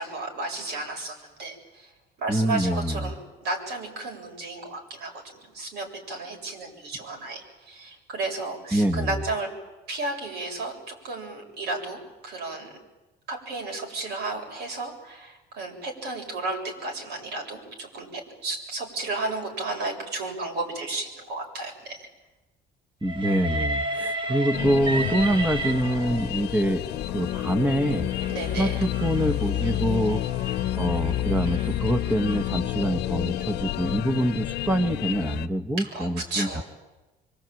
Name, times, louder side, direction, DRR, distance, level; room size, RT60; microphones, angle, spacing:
voice 1, 0.0-1.9 2.2-9.5 9.9-12.8 13.3-22.1 28.3-28.8 35.8-36.6, right 2 dB, 80° right, 2 dB, 7.6 m, -33 dB
voice 2, 2.3-3.1 8.7-9.2 23.0-26.8 27.1-28.1 28.6-30.2 30.8-36.6, right 1 dB, 10° right, 6 dB, 1.4 m, -25 dB
Train, 23.0-26.4 27.3-32.5, right 2 dB, 30° right, 1.9 m, -34 dB
sound 1, 24.5-35.5, left 13 dB, 80° left, 1.0 m, -29 dB
25.0 x 24.5 x 9.2 m, 1.1 s
cardioid pair, 110°, 17 cm